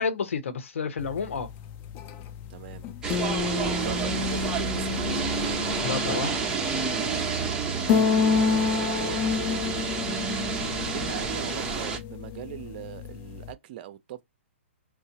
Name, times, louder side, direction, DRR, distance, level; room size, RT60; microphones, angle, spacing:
voice 1, 0.0-1.5 5.8-6.4, left 5 dB, 75° left, 0.9 m, -30 dB
sound 1, 1.0-13.5, left 6 dB, 30° left, 0.4 m, -30 dB
voice 2, 2.5-2.9 3.8-5.0 8.4-9.4 10.9-14.2, right 12 dB, 45° right, 0.6 m, -40 dB
sound 2, 3.0-12.0, right 5 dB, 10° right, 0.8 m, -29 dB
4.5 x 2.0 x 2.8 m
hypercardioid pair, 130°, 7 cm